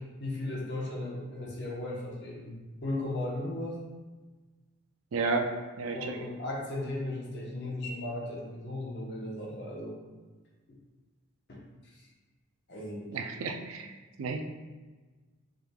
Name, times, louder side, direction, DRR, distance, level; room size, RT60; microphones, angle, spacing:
voice 1, 0.0-3.8 5.9-10.0 11.5-12.1 12.7-13.2, left 1 dB, 55° left, -4 dB, 1.0 m, -36 dB
voice 2, 5.1-5.5 5.8-6.2 13.1-13.9 14.2-14.4, right 4 dB, 75° right, 5 dB, 0.4 m, -31 dB
5.0 x 3.2 x 2.3 m, 1.3 s
head